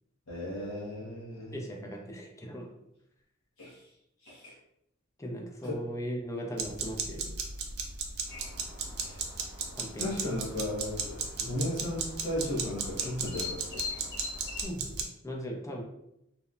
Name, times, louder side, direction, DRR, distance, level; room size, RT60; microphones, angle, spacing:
voice 1, 0.3-1.5 3.6-3.8 4.2-4.6 5.6-5.8 9.0-9.2 10.0-14.1, left 1 dB, 85° left, -7 dB, 0.8 m, -35 dB
voice 2, 1.5-2.7 5.2-7.3 9.8-10.3 11.4-11.5 14.6-15.8, equal, 15° left, 0 dB, 0.4 m, -39 dB
sound 1, 6.6-15.0, right 5 dB, 55° right, 0.4 m, -36 dB
sound 2, 8.3-14.6, left 4 dB, 55° left, 0.6 m, -44 dB
2.8 x 2.0 x 2.4 m, 0.81 s
head